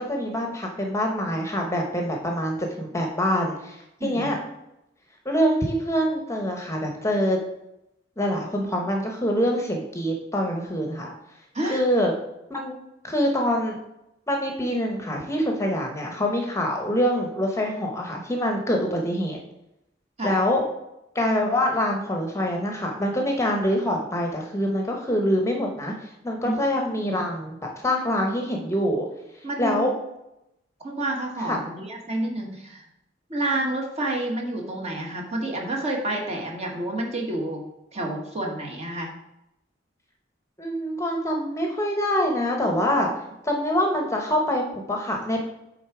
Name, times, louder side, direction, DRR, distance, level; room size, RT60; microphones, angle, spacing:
voice 1, 0.0-4.4 5.2-7.4 8.2-11.1 11.7-12.1 12.5-12.8 13.0-13.8 14.3-19.4 20.2-20.6 21.1-27.6 27.8-29.1 29.6-29.9 31.5-31.6 40.6-43.1 43.4-45.4, equal, 15° left, 2 dB, 0.9 m, -25 dB
voice 2, 4.0-4.3 11.5-11.8 20.2-20.4 26.4-26.5 27.0-27.2 29.4-30.0 30.8-32.8 33.3-37.6 37.9-39.1, right 1 dB, 35° right, 0 dB, 1.4 m, -29 dB
8.1 x 3.8 x 4.7 m, 0.86 s
head